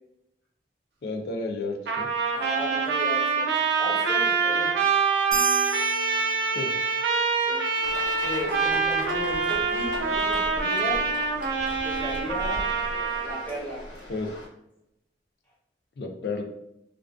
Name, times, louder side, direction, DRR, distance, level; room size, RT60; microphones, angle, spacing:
voice 1, 1.0-2.1 6.5-6.7 14.1-14.3 16.0-16.4, left 3 dB, 65° left, 2 dB, 0.4 m, -31 dB
Trumpet, 1.9-13.5, right 5 dB, 70° right, 0.4 m, -25 dB
voice 2, 2.3-4.8 7.4-7.6 8.2-11.0 11.8-12.7 13.2-13.9, equal, 10° left, -6 dB, 0.7 m, -35 dB
sound 1, 5.3-7.2, right 3 dB, 20° right, 0.9 m, -33 dB
sound 2, 7.8-14.5, left 1 dB, 85° left, 1.0 m, -39 dB
2.3 x 2.2 x 2.3 m, 0.83 s
head